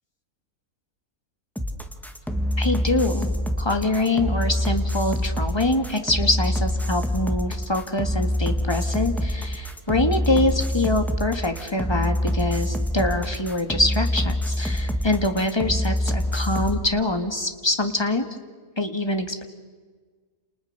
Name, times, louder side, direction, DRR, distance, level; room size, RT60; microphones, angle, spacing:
sound 1, 1.6-16.8, left 1 dB, ahead, 1.8 m, -25 dB
voice 1, 2.6-3.3 3.6-18.3 18.8-19.4, left 2 dB, 20° left, 6 dB, 1.8 m, -24 dB
30.0 x 28.5 x 6.7 m, 1.5 s
omnidirectional pair, 1.5 m